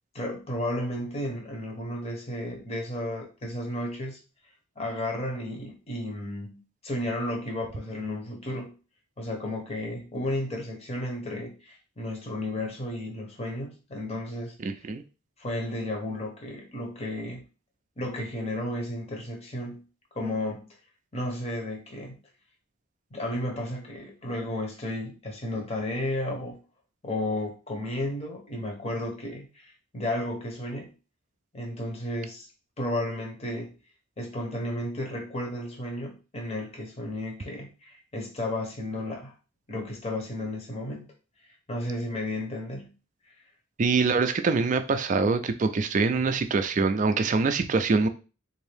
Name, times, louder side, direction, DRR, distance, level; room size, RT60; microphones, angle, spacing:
voice 1, 0.1-4.2 4.8-8.7 9.2-14.5 15.4-17.4 18.0-19.8 20.1-20.6 21.1-22.2 23.1-26.6 27.0-30.9 31.5-32.5 32.8-33.7 34.2-39.3 39.7-41.1 41.7-42.9, left 1 dB, 30° left, 0.8 m, -33 dB
voice 2, 14.6-15.0 43.8-48.1, right 4 dB, 35° right, 0.3 m, -24 dB
3.6 x 2.6 x 3.4 m
head